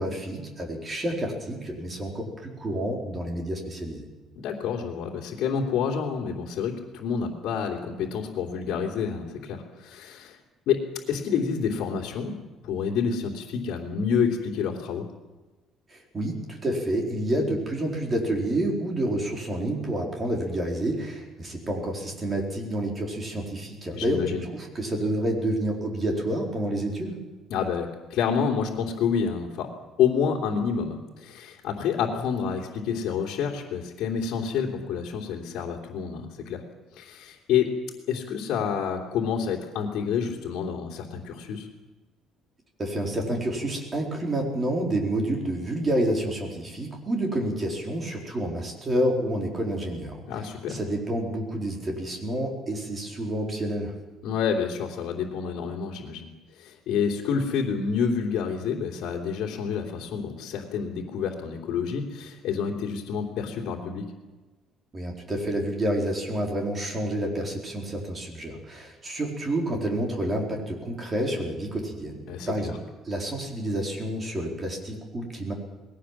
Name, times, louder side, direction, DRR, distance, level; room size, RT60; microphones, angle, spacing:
voice 1, 0.0-4.0 15.9-27.2 42.8-50.2 50.7-53.9 64.9-72.8 73.0-75.5, right 1 dB, 20° right, 1 dB, 4.4 m, -29 dB
voice 2, 4.3-10.4 10.7-12.3 12.6-15.1 23.9-24.5 27.5-29.7 30.0-36.6 36.9-37.7 38.1-41.7 50.3-50.8 54.2-56.3 56.6-64.1 72.3-72.8, left 6 dB, 65° left, -2 dB, 3.1 m, -28 dB
20.5 x 17.5 x 7.5 m, 1.2 s
cardioid pair, 160°, 0 cm